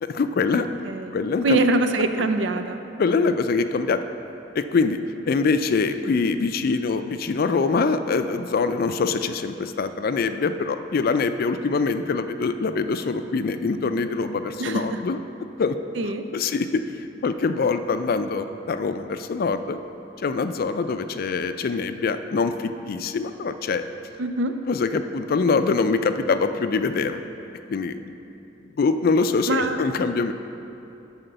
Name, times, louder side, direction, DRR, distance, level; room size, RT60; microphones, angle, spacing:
voice 1, 0.0-0.7 1.1-1.6 3.0-4.0 4.5-5.0 5.3-15.2 15.6-15.8 16.3-16.8 17.2-19.8 20.2-23.8 24.7-27.2 27.7-28.1 28.8-30.3, left 4 dB, 55° left, 10 dB, 0.4 m, -24 dB
voice 2, 0.5-1.2 1.4-2.8 14.6-15.0 16.0-16.3 24.2-24.6 29.5-29.8, right 2 dB, 75° right, 8 dB, 0.5 m, -24 dB
10.0 x 4.3 x 6.7 m, 2.9 s
head